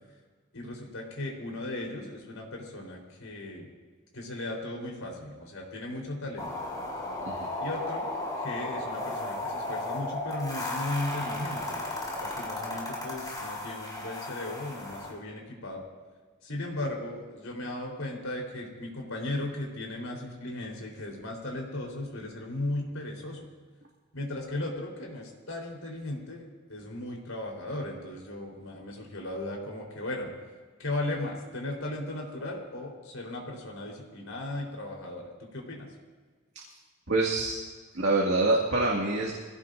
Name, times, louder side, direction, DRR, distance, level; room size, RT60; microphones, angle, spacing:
voice 1, 0.5-3.7 4.1-6.5 7.6-8.1 8.4-11.8 12.2-15.8 16.4-23.5 24.1-30.3 30.8-35.9, left 1 dB, 85° left, -1 dB, 4.1 m, -36 dB
sound 1, 6.4-15.1, left 2 dB, 20° left, 4.6 m, -35 dB
voice 2, 37.1-37.6 37.9-39.3, right 2 dB, 60° right, -3 dB, 2.2 m, -25 dB
24.5 x 17.0 x 2.6 m, 1.4 s
head